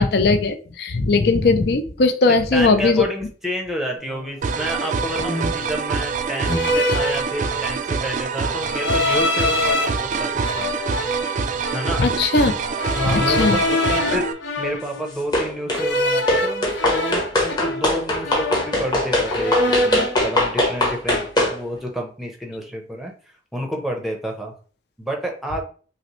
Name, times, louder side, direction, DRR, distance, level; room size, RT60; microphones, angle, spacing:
voice 1, 0.0-3.0 12.0-12.5 13.0-13.6, left 3 dB, 60° left, 7 dB, 0.5 m, -18 dB
voice 2, 2.3-10.7 11.7-12.1 12.9-24.5 25.0-25.6, equal, ahead, 1 dB, 0.7 m, -30 dB
sound 1, 4.0-4.3 5.1-5.7 6.5-7.9 8.7-9.9 10.4-12.0 12.8-15.1 15.7-18.0 18.2-19.0 19.2-20.2, left 1 dB, 80° left, 0.9 m, -24 dB
sound 2, 4.4-14.3, right 5 dB, 40° right, 0.3 m, -25 dB
sound 3, 15.3-15.9 16.3-21.6, left 1 dB, 20° left, 1.0 m, -21 dB
5.5 x 2.1 x 3.0 m, 0.41 s
head